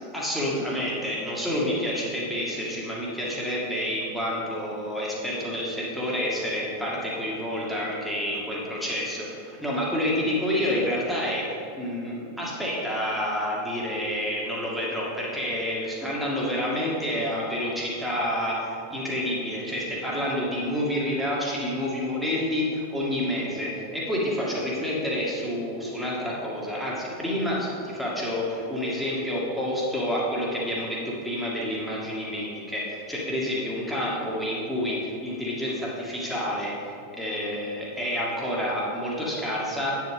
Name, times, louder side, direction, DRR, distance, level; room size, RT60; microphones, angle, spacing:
voice 1, 0.0-36.7 37.1-40.0, left 1 dB, ahead, -5 dB, 2.1 m, -29 dB
8.9 x 7.6 x 3.7 m, 2.6 s
figure-of-eight pair, 90°, 0 cm